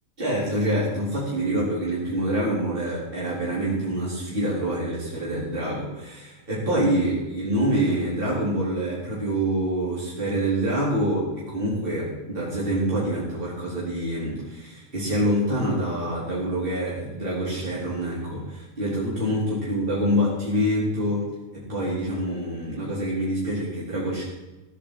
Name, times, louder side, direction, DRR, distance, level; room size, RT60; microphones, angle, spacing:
voice 1, 0.2-21.3 21.5-24.3, right 1 dB, 40° right, -8 dB, 4.5 m, -26 dB
16.0 x 10.0 x 5.0 m, 1.1 s
omnidirectional pair, 1.5 m